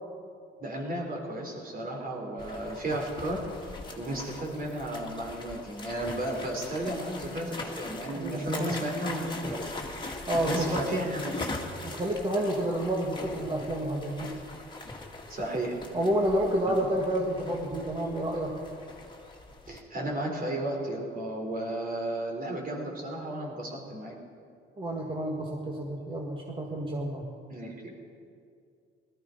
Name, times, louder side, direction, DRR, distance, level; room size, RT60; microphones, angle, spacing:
voice 1, 0.6-3.4 4.0-9.6 10.4-11.4 15.3-15.8 16.7-16.8 19.7-24.1 27.5-27.7, right 1 dB, 45° right, 0 dB, 4.1 m, -33 dB
sound 1, 2.4-19.8, left 2 dB, 25° left, 2.1 m, -40 dB
voice 2, 8.1-8.7 10.3-10.8 11.8-14.4 15.9-18.6 24.8-27.3, right 1 dB, 25° right, -1 dB, 1.9 m, -29 dB
18.5 x 14.0 x 5.3 m, 2.4 s
cardioid pair, 90°, 20 cm